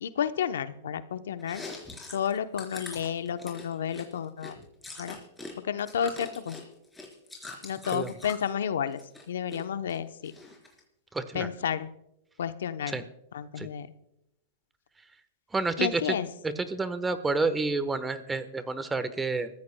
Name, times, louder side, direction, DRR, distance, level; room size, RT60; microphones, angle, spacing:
voice 1, 0.0-1.6 2.1-4.6 5.0-5.2 5.6-6.6 7.6-9.0 9.3-10.3 11.3-11.9 12.4-13.0 13.3-13.9 15.8-16.3, left 8 dB, 80° left, 11 dB, 0.7 m, -31 dB
Chewing mastication, 1.4-5.5 5.8-8.5 8.9-9.6 9.9-10.8, left 2 dB, 5° left, 4.0 m, -43 dB
voice 2, 11.1-11.5 12.9-13.0 13.6-13.7 15.5-16.2 16.4-19.5, right 3 dB, 10° right, 11 dB, 1.1 m, -29 dB
26.0 x 15.0 x 2.2 m, 0.85 s
hypercardioid pair, 125°, 0 cm